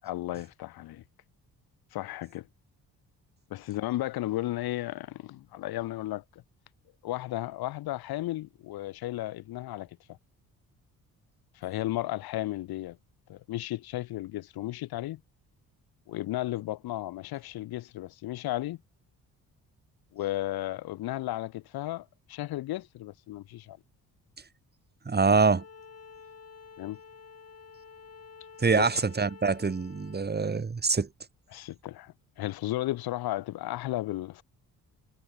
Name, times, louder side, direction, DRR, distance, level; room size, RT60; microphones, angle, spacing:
voice 1, 0.0-1.0 1.9-2.5 3.5-6.4 7.0-9.9 11.5-13.0 13.3-15.2 16.1-18.8 20.1-23.8 26.8-27.0 28.7-29.0 31.5-34.4, left 15 dB, 80° left, 1.2 m, -34 dB
voice 2, 25.0-25.6 28.6-31.1, right 4 dB, 25° right, 1.4 m, -25 dB
Bowed string instrument, 25.3-30.3, left 6 dB, 40° left, 5.8 m, -50 dB
cardioid pair, 70°, 37 cm